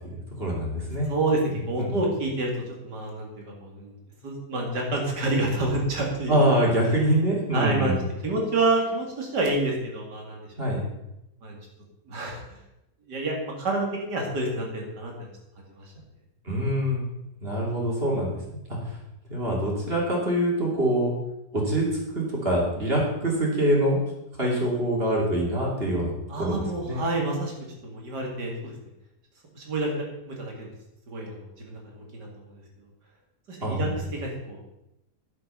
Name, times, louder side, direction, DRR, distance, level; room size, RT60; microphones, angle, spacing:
voice 1, 0.4-1.1 1.7-1.9 6.3-8.0 10.6-10.8 16.4-17.0 17.4-18.4 18.7-18.8 19.3-21.1 21.5-24.0 24.4-26.1 26.4-27.0 33.6-34.0, right 1 dB, 35° right, -3 dB, 3.1 m, -24 dB
voice 2, 1.1-1.4 1.7-3.9 4.2-6.4 7.5-7.9 8.2-10.5 11.4-11.6 12.1-12.6 13.1-15.3 15.7-15.9 26.3-27.5 27.8-28.7 29.5-30.7 31.1-32.6 33.5-34.7, right 2 dB, 90° right, 0 dB, 2.9 m, -28 dB
9.9 x 8.0 x 5.5 m, 0.89 s
omnidirectional pair, 1.7 m